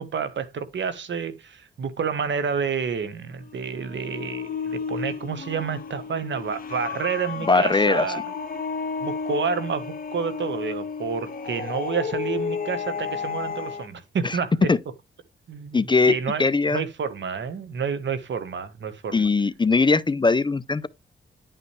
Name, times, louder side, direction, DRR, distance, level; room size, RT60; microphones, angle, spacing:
voice 1, 0.0-8.2 9.0-14.7 15.5-16.4 16.7-19.3, right 6 dB, 65° right, 1.4 m, -29 dB
sound 1, 3.3-13.9, left 5 dB, 45° left, 1.5 m, -32 dB
voice 2, 7.4-8.1 14.2-14.4 14.7-14.8 15.7-16.8 19.1-20.9, left 3 dB, 25° left, 0.6 m, -20 dB
10.5 x 5.7 x 3.3 m
cardioid pair, 80°, 20 cm